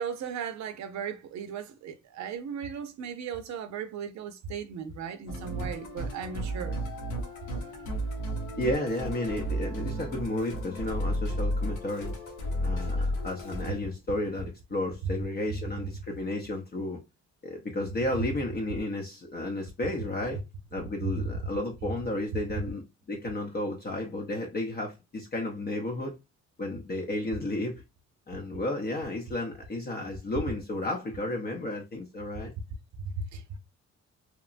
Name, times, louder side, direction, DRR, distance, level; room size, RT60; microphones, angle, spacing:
voice 1, 0.0-6.8 13.0-13.1 33.2-33.6, right 7 dB, 65° right, 0.6 m, -37 dB
Musical instrument, 5.3-13.7, equal, 80° left, 0.9 m, -33 dB
voice 2, 8.6-12.2 12.6-17.0 17.4-20.4 20.7-26.2 26.6-27.8 28.3-32.5, left 1 dB, 30° left, 0.7 m, -32 dB
2.9 x 2.2 x 2.4 m
cardioid pair, 90°, 30 cm